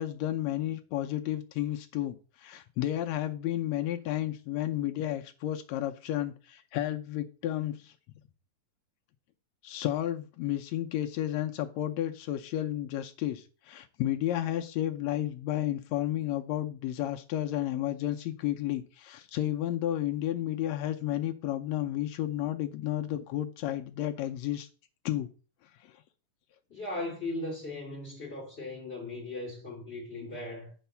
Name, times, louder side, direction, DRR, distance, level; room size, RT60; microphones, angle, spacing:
voice 1, 0.0-7.9 9.6-24.7 25.1-25.3 25.8-25.9, left 13 dB, 75° left, 1.7 m, -32 dB
voice 2, 26.7-30.7, left 2 dB, 20° left, 3.1 m, -38 dB
9.3 x 4.0 x 5.6 m
omnidirectional pair, 3.4 m